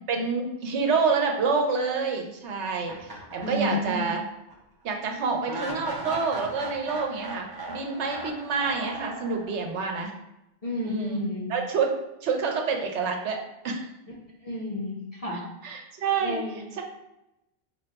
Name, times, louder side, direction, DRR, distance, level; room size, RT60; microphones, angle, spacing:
voice 1, 0.1-4.2 4.8-10.1 10.8-11.2 11.5-11.9 12.2-13.9 15.6-16.4 16.8-16.9, right 4 dB, 75° right, 2 dB, 0.9 m, -28 dB
sound 1, 2.9-4.1 4.5-4.6 5.5-9.8, right 2 dB, 35° right, 0.4 m, -37 dB
voice 2, 3.4-4.1 10.6-11.5 14.4-15.5 16.2-16.6, left 1 dB, 35° left, -4 dB, 0.8 m, -31 dB
4.6 x 2.2 x 3.8 m, 0.89 s
omnidirectional pair, 1.2 m